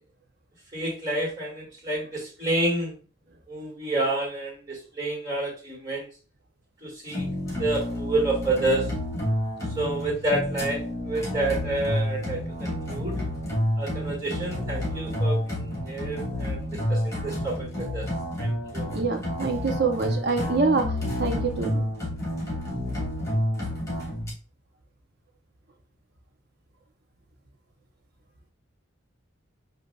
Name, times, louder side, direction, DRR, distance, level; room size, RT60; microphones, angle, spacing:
voice 1, 0.7-2.9 3.5-6.1 6.8-7.2 7.6-8.9 9.8-13.2 13.8-18.1 18.4-18.9, right 2 dB, 20° right, -2 dB, 2.3 m, -29 dB
sound 1, 7.1-24.3, left 1 dB, 15° left, 2.1 m, -29 dB
voice 2, 18.8-21.8, right 4 dB, 50° right, 3 dB, 0.8 m, -26 dB
7.8 x 2.7 x 2.3 m, 0.35 s
head